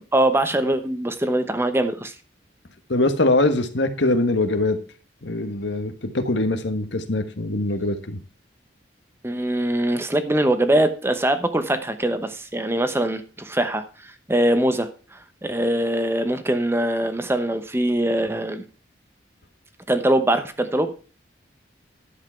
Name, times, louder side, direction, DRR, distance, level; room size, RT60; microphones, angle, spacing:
voice 1, 0.0-2.1 9.2-13.8 14.3-18.6 19.9-20.9, right 1 dB, 15° right, 9 dB, 0.9 m, -22 dB
voice 2, 2.9-4.8 5.2-8.2, left 2 dB, 80° left, 9 dB, 1.4 m, -22 dB
11.0 x 7.4 x 4.5 m, 0.36 s
head